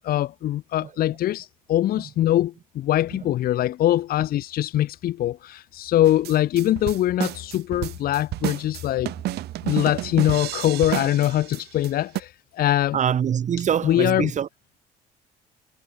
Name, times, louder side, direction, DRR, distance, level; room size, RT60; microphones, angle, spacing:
voice 1, 0.0-9.1 9.6-13.0 13.8-14.3, left 13 dB, 65° left, 1.0 m, -23 dB
sound 1, 6.0-11.9 12.2-12.3, right 16 dB, 75° right, 1.0 m, -30 dB
voice 2, 12.9-14.5, right 8 dB, 45° right, 2.1 m, -24 dB
cardioid pair, 110°, 17 cm